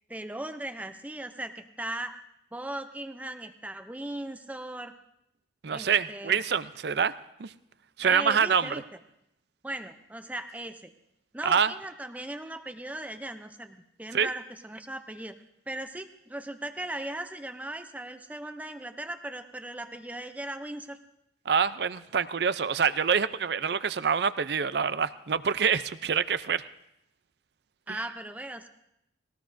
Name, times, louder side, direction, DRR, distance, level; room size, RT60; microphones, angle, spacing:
voice 1, 0.0-2.2 2.5-5.0 5.7-6.4 8.0-9.0 9.6-10.9 11.3-15.4 15.7-21.0 27.9-28.7, right 1 dB, 10° right, 8 dB, 0.5 m, -38 dB
voice 2, 5.6-7.1 7.4-7.5 8.0-8.7 11.4-11.7 14.1-14.3 21.5-26.6 27.9-28.0, right 6 dB, 60° right, 14 dB, 0.5 m, -26 dB
20.5 x 18.0 x 2.6 m, 0.79 s
head